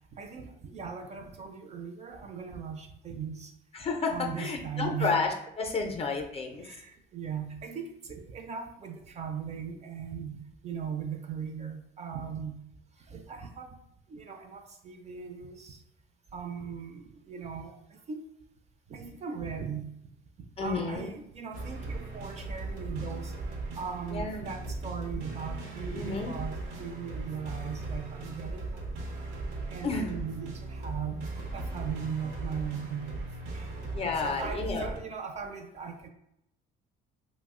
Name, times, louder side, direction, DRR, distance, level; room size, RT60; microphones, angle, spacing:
voice 1, 0.1-3.5 4.1-5.2 6.6-12.6 13.1-13.8 14.1-15.8 16.3-18.2 18.9-19.9 20.4-23.3 23.7-29.2 29.7-33.1 33.5-33.7 34.2-36.1, right 7 dB, 35° right, 5 dB, 0.4 m, -39 dB
voice 2, 3.7-6.7 20.6-21.1 24.1-24.5 25.9-26.4 29.8-30.1 33.9-34.9, left 4 dB, 30° left, 4 dB, 0.4 m, -31 dB
sound 1, 21.5-35.0, right 2 dB, 90° right, 0.7 m, -38 dB
2.9 x 2.0 x 3.5 m, 0.78 s
cardioid pair, 120°, 21 cm